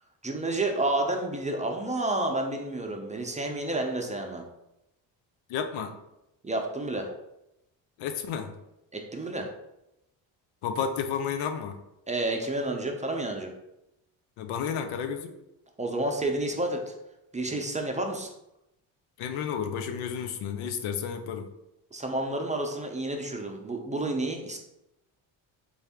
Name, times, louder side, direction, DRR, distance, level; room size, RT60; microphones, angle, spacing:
voice 1, 0.2-4.4 6.4-7.1 8.9-9.5 12.1-13.5 15.8-16.9 17.3-18.3 21.9-24.6, right 2 dB, 15° right, 2 dB, 0.5 m, -30 dB
voice 2, 5.5-5.9 8.0-8.5 10.6-11.8 14.4-15.3 19.2-21.5, left 7 dB, 80° left, 7 dB, 0.6 m, -31 dB
3.4 x 2.6 x 3.5 m, 0.88 s
supercardioid pair, 70°, 48 cm